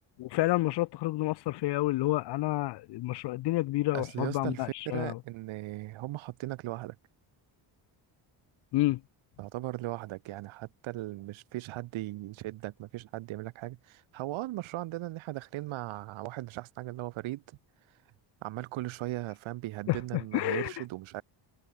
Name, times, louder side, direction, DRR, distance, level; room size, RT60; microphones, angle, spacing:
voice 1, 0.2-5.2 8.7-9.0 19.9-20.7, left 17 dB, 60° left, 0.5 m, -29 dB
voice 2, 3.9-7.0 9.4-17.6 18.4-21.2, right 17 dB, 85° right, 1.8 m, -38 dB
cardioid pair, 100°, 46 cm